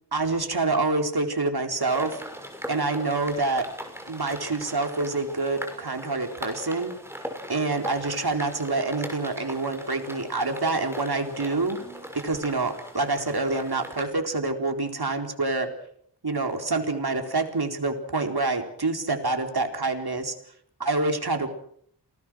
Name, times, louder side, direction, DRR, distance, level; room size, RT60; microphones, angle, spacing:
voice 1, 0.1-2.2 2.7-3.7 4.1-6.9 7.5-11.8 12.1-15.7 16.2-20.3 20.8-21.5, right 3 dB, 60° right, 4 dB, 4.3 m, -27 dB
sound 1, 1.8-14.1, equal, 5° right, 6.3 m, -40 dB
29.0 x 20.0 x 6.4 m, 0.67 s
wide cardioid pair, 50°, 43 cm